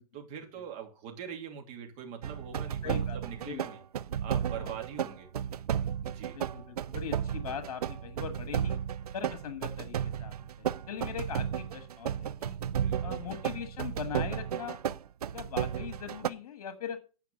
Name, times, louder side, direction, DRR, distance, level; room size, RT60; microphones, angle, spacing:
voice 1, 0.1-3.8 4.2-5.3 6.0-6.4 11.3-11.4 12.8-13.1, right 8 dB, 35° right, 3 dB, 2.8 m, -43 dB
sound 1, 2.2-16.3, right 9 dB, 85° right, 0.6 m, -33 dB
voice 2, 2.8-3.2 3.4-3.7 4.6-4.7 6.3-8.8 9.1-12.6 13.0-14.8 15.3-17.0, left 8 dB, 65° left, 8 dB, 1.4 m, -40 dB
9.2 x 5.7 x 6.4 m, 0.36 s
hypercardioid pair, 135°, 19 cm